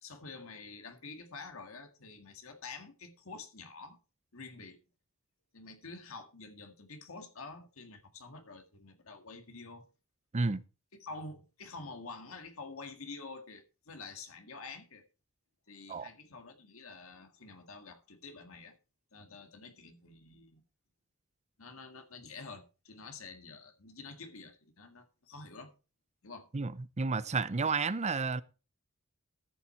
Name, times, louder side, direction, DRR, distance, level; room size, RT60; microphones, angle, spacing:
voice 1, 0.0-4.0 4.3-4.8 5.5-9.9 11.0-15.0 15.7-18.8 19.1-20.6 21.6-25.7 26.2-26.5, left 3 dB, 80° left, 1.8 m, -48 dB
voice 2, 26.5-28.4, right 4 dB, 35° right, 0.6 m, -31 dB
13.5 x 7.3 x 4.4 m
head